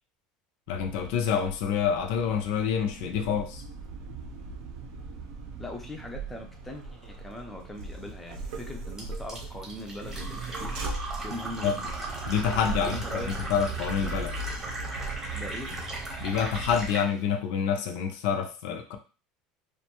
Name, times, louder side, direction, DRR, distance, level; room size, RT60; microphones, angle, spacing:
voice 1, 0.7-3.6 11.6-11.8 12.3-13.2 13.5-14.3 16.2-19.0, left 7 dB, 70° left, 5 dB, 0.4 m, -27 dB
sound 1, 0.7-16.9, right 3 dB, 75° right, 0.6 m, -39 dB
voice 2, 5.6-10.8 11.2-11.9 12.8-13.5 15.3-15.8, left 1 dB, 5° left, 2 dB, 0.4 m, -40 dB
Fill (with liquid), 9.0-17.1, right 2 dB, 15° right, 0.8 m, -38 dB
2.5 x 2.2 x 2.9 m, 0.34 s
cardioid pair, 155°, 2 cm